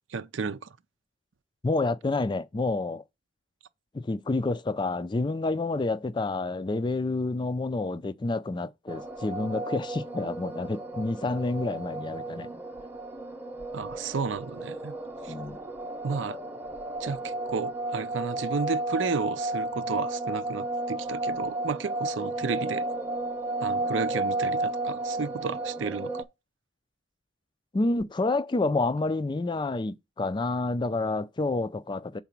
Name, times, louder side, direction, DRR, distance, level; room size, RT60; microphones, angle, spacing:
voice 1, 0.1-0.7 13.7-14.9 15.2-15.3 16.0-16.4 17.0-22.9 23.6-26.2, right 5 dB, 85° right, 0.6 m, -32 dB
voice 2, 1.6-3.0 3.9-12.5 15.3-15.6 27.7-32.2, left 2 dB, 25° left, 0.4 m, -29 dB
sound 1, 8.9-26.2, right 2 dB, 10° right, 0.8 m, -33 dB
5.8 x 4.0 x 5.9 m
head